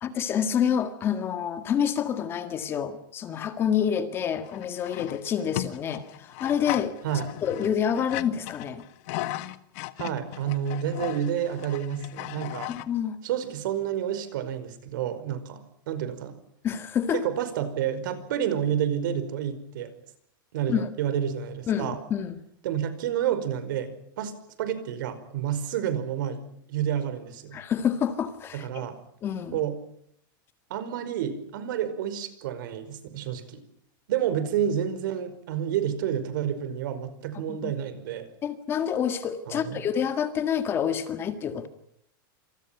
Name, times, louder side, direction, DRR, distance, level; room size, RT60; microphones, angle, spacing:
voice 1, 0.0-7.0 7.4-8.8 12.7-13.2 16.6-17.2 20.7-20.9 21.7-22.4 27.5-28.9 29.2-29.6 37.5-37.7 38.4-41.7, left 8 dB, 20° left, 9 dB, 1.8 m, -28 dB
sound 1, 4.4-12.9, left 16 dB, 40° left, 1.5 m, -36 dB
voice 2, 10.0-12.7 13.2-16.4 17.1-19.9 20.5-22.0 22.6-26.4 26.7-27.6 28.5-29.0 29.5-29.8 30.7-33.6 34.1-38.3 39.5-39.8, right 9 dB, 65° right, 12 dB, 5.3 m, -29 dB
28.0 x 27.0 x 6.0 m, 0.67 s
supercardioid pair, 175°, 12 cm